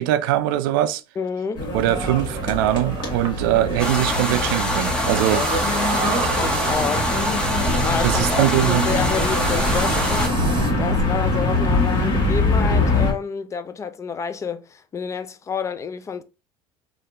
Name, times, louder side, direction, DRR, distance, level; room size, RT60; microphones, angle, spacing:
voice 1, 0.0-1.0 1.7-5.5 8.0-8.9, right 14 dB, 90° right, 0.4 m, -21 dB
voice 2, 1.2-1.7 5.1-5.5 6.4-7.1 7.8-16.2, left 6 dB, 25° left, 0.4 m, -29 dB
sound 1, 1.5-13.1, left 2 dB, 45° left, 1.4 m, -23 dB
sound 2, 2.0-12.2, right 5 dB, 45° right, 0.8 m, -34 dB
sound 3, 3.8-10.3, equal, 10° left, 0.8 m, -25 dB
3.1 x 2.5 x 2.8 m
supercardioid pair, 105°, 11 cm